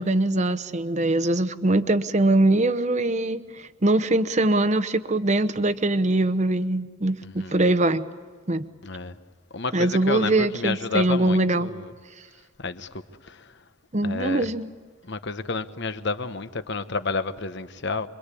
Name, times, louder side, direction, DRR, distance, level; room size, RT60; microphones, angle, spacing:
voice 1, 0.0-8.0 8.5-8.6 9.7-11.7 13.9-14.7, right 2 dB, 35° right, 0.8 m, -22 dB
voice 2, 7.2-7.6 8.8-9.1 9.5-11.9 12.6-12.9 13.2-13.5 14.0-14.5 15.0-18.1, left 4 dB, 55° left, 1.1 m, -30 dB
26.0 x 23.5 x 8.4 m
head